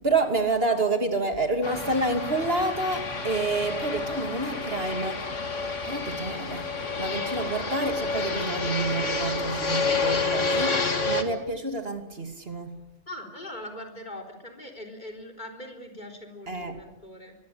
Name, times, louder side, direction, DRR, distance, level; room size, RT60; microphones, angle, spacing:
voice 1, 0.0-5.3 5.8-6.7 7.0-12.8 16.5-16.8, right 2 dB, 55° right, 6 dB, 2.9 m, -28 dB
Fixed-wing aircraft airplane, 1.6-11.2, left 3 dB, 85° left, 2.5 m, -29 dB
voice 2, 13.1-17.4, left 1 dB, 40° left, 3 dB, 4.2 m, -41 dB
24.5 x 22.5 x 8.6 m, 0.83 s
omnidirectional pair, 1.2 m